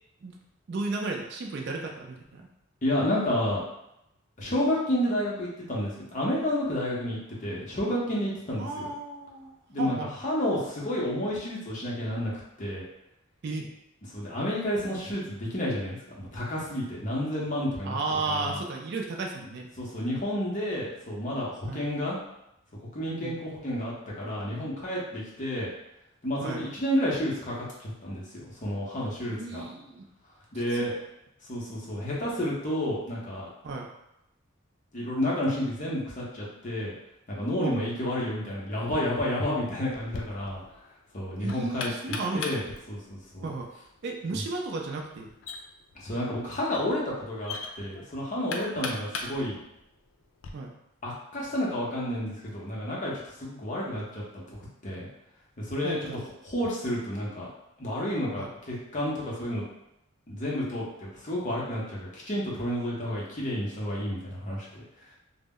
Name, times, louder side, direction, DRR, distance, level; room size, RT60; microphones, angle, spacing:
voice 1, 0.7-2.4 8.6-9.5 9.8-10.1 13.4-13.7 17.8-19.7 21.7-21.9 23.0-23.4 26.4-26.6 29.3-30.0 30.7-30.9 33.6-33.9 37.6-37.9 41.4-42.6 43.4-43.7 44.0-45.3 48.8-48.9 50.5-50.7 55.8-56.2 58.4-58.5, right 3 dB, 55° right, 1 dB, 0.3 m, -34 dB
voice 2, 2.8-3.6 4.4-8.9 9.7-10.0 10.2-12.3 12.6-12.8 14.1-18.6 19.8-22.2 22.9-25.7 26.2-29.6 30.5-30.9 31.5-33.5 34.9-36.9 37.3-40.6 41.1-43.5 45.9-49.6 51.0-53.1 53.4-54.4 54.8-55.1 55.6-56.1 56.4-57.5 57.8-59.6 60.3-64.7, left 1 dB, 35° left, -5 dB, 0.7 m, -30 dB
Knock, 39.9-50.5, left 3 dB, 70° left, 0.4 m, -41 dB
2.0 x 2.0 x 3.5 m, 0.85 s
head